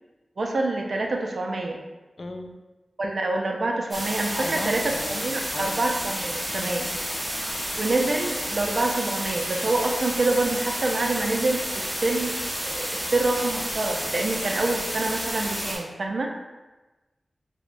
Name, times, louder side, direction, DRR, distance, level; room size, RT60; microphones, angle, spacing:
voice 1, 0.4-1.8 3.0-6.9 7.7-16.3, right 2 dB, 60° right, 2 dB, 0.4 m, -26 dB
voice 2, 2.2-2.5 4.3-5.8 6.6-6.8, left 2 dB, 45° left, 4 dB, 0.3 m, -36 dB
sound 1, 3.9-15.8, equal, 15° right, 1.0 m, -30 dB
5.8 x 2.0 x 2.5 m, 1.1 s
wide cardioid pair, 95°, 0 cm